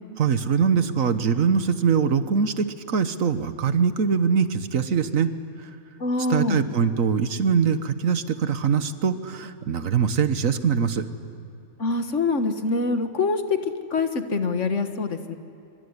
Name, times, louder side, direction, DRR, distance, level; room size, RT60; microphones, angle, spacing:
voice 1, 0.2-5.3 5.6-5.7 6.3-11.1, right 6 dB, 85° right, 11 dB, 1.6 m, -23 dB
voice 2, 6.0-6.6 11.8-13.4 13.9-15.4, left 3 dB, 65° left, 8 dB, 1.9 m, -25 dB
25.0 x 24.0 x 9.7 m, 2.8 s
omnidirectional pair, 1.4 m